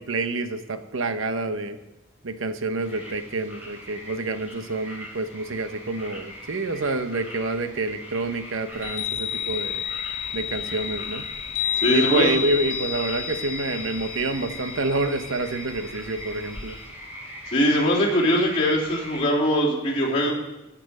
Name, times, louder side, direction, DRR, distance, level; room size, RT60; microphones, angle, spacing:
voice 1, 0.0-1.8 2.2-9.8 10.3-11.3 11.9-16.8, right 2 dB, 75° right, 9 dB, 0.9 m, -28 dB
sound 1, 2.8-19.2, equal, 10° right, 4.2 m, -41 dB
Chime, 8.7-16.9, left 8 dB, 50° left, 3.1 m, -31 dB
voice 2, 11.8-12.3 17.5-20.3, equal, 30° left, -6 dB, 3.5 m, -21 dB
15.0 x 5.9 x 6.6 m, 0.97 s
head